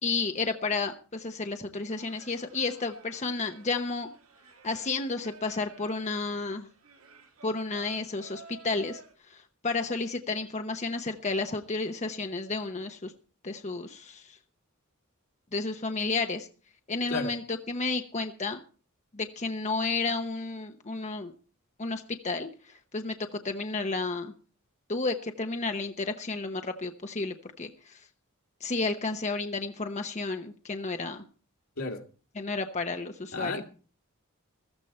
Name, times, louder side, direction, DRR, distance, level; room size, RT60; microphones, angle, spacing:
voice 1, 0.0-4.1 4.6-6.7 7.4-13.1 13.4-14.4 15.5-16.5 16.9-18.6 19.1-21.3 21.8-24.3 24.9-28.1 28.6-31.2 32.4-33.6, left 3 dB, 30° left, 0.9 m, -32 dB
Singing, 1.9-9.1, right 5 dB, 80° right, 3.1 m, -53 dB
voice 2, 17.1-17.3 31.8-32.0 33.3-33.6, left 3 dB, 75° left, 2.4 m, -32 dB
15.0 x 14.0 x 4.3 m
head